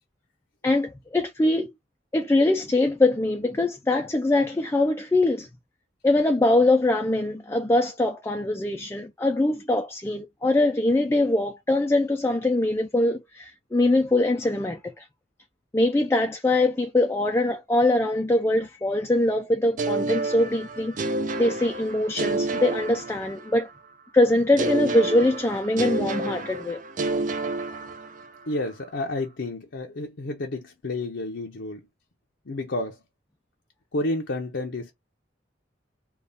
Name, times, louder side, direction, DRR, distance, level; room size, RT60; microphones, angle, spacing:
voice 1, 0.6-1.7 2.1-5.5 6.0-15.1 15.7-21.0 21.4-23.7 24.1-26.8, left 2 dB, 15° left, 0.4 m, -23 dB
sound 1, 19.8-23.7 24.6-28.4, right 2 dB, 45° right, 0.6 m, -29 dB
voice 2, 28.5-31.8 32.5-33.0 33.9-34.9, left 2 dB, 65° left, 0.6 m, -30 dB
3.4 x 2.3 x 3.8 m
head